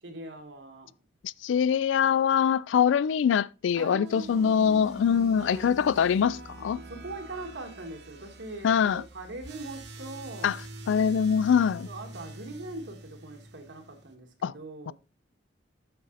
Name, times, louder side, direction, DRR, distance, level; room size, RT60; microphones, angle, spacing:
voice 1, 0.0-0.9 3.7-5.8 6.9-10.6 11.9-14.9, right 2 dB, 80° right, 1.9 m, -42 dB
voice 2, 1.2-6.8 8.6-9.0 10.4-10.6 10.9-11.9 14.4-14.5 14.9-15.0, left 7 dB, 85° left, 0.3 m, -24 dB
sound 1, 4.0-14.1, right 1 dB, 60° right, 1.4 m, -45 dB
8.8 x 6.3 x 4.0 m
head